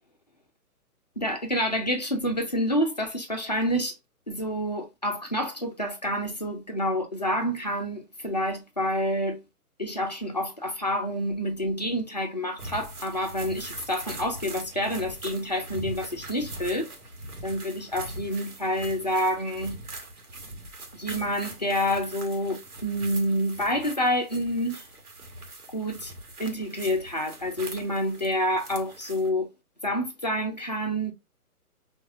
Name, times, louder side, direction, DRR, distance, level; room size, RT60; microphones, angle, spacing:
voice 1, 1.2-4.0 4.3-9.4 9.8-16.9 17.4-19.8 21.0-24.9 25.7-26.1 26.4-29.5 29.8-31.1, equal, 30° left, 0.4 m, -28 dB
sound 1, 12.6-29.3, right 2 dB, 70° right, 1.2 m, -42 dB
4.5 x 2.3 x 2.4 m
figure-of-eight pair, 135°, 46 cm